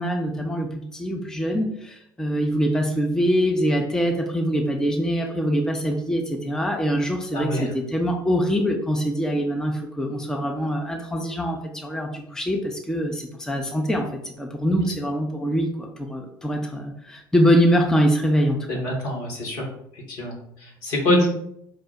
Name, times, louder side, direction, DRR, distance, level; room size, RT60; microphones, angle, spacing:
voice 1, 0.0-18.8 21.1-21.3, equal, 5° left, 1 dB, 0.6 m, -24 dB
voice 2, 7.3-7.7 18.7-19.6 19.9-21.3, left 1 dB, 60° left, -1 dB, 1.4 m, -26 dB
5.0 x 2.1 x 4.3 m, 0.74 s
figure-of-eight pair, 60°, 12 cm